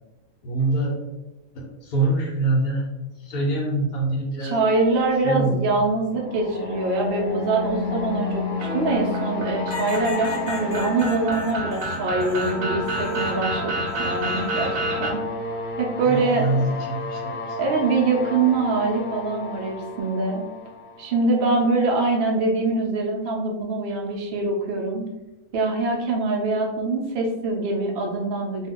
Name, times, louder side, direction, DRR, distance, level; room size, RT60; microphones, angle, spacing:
voice 1, 0.4-0.9 1.5-2.8 3.2-4.6 5.2-5.7 16.0-17.7, right 2 dB, 85° left, -3 dB, 1.2 m, -25 dB
voice 2, 4.4-15.2 15.8-16.6 17.6-20.4 21.0-25.0 25.5-28.7, right 3 dB, 70° right, 0 dB, 0.5 m, -24 dB
sound 1, 6.1-21.9, left 3 dB, 50° left, 1.0 m, -32 dB
sound 2, 8.6-15.1, right 1 dB, 85° right, 1.2 m, -30 dB
sound 3, 9.7-13.4 13.9-14.7 16.0-16.5, left 3 dB, 65° left, 0.5 m, -38 dB
2.7 x 2.2 x 3.5 m, 1.0 s
omnidirectional pair, 1.5 m